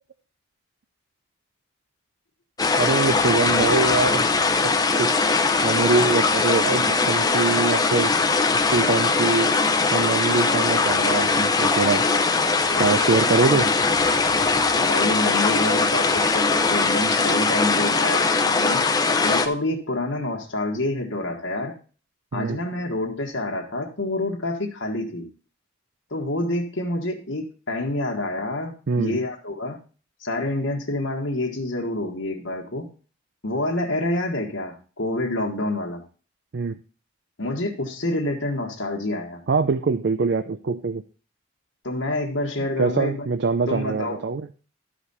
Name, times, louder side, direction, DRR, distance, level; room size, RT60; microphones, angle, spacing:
sound 1, 2.6-19.5, left 4 dB, 20° left, 0.6 m, -21 dB
voice 1, 2.8-4.3 4.6-8.2 8.5-9.5 9.9-12.0 12.8-13.7 22.3-22.6 28.9-29.2 36.5-36.7 39.5-41.0 42.8-44.5, right 4 dB, 55° right, 10 dB, 0.4 m, -24 dB
voice 2, 14.8-18.9 19.2-21.7 22.3-25.3 26.1-29.8 30.2-32.9 33.4-36.0 37.4-39.4 41.8-43.3 43.7-44.3, left 1 dB, 75° left, 0 dB, 1.5 m, -27 dB
12.5 x 5.1 x 4.1 m, 0.38 s
head